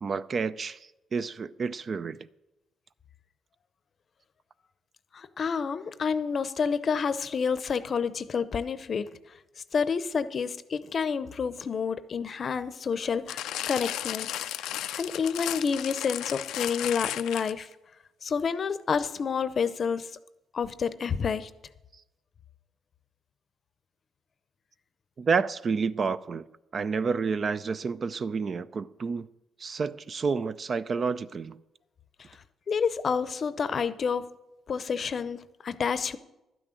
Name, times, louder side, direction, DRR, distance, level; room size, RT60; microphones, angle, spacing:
voice 1, 0.0-2.3 25.2-26.4 26.7-29.3 29.6-31.6, right 5 dB, 45° right, 0.4 m, -29 dB
voice 2, 5.1-9.1 9.7-14.3 14.6-17.7 18.2-20.1 20.5-21.5 32.7-34.3 34.7-36.2, left 6 dB, 45° left, 0.6 m, -29 dB
sound 1, 13.3-17.7 18.5-18.6, left 12 dB, 85° left, 0.4 m, -34 dB
12.0 x 6.2 x 9.0 m
cardioid pair, 90°, 0 cm